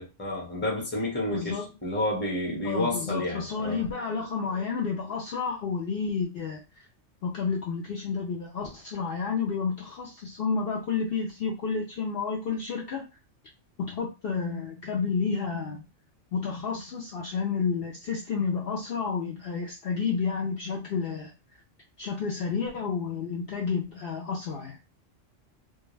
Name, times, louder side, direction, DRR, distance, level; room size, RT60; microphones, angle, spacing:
voice 1, 0.0-3.8, left 1 dB, 10° left, -2 dB, 0.8 m, -30 dB
voice 2, 1.3-1.6 2.6-6.6 7.2-13.0 13.8-15.8 16.3-21.3 22.0-24.8, left 5 dB, 60° left, -1 dB, 0.7 m, -30 dB
2.3 x 2.3 x 3.1 m, 0.27 s
omnidirectional pair, 1.3 m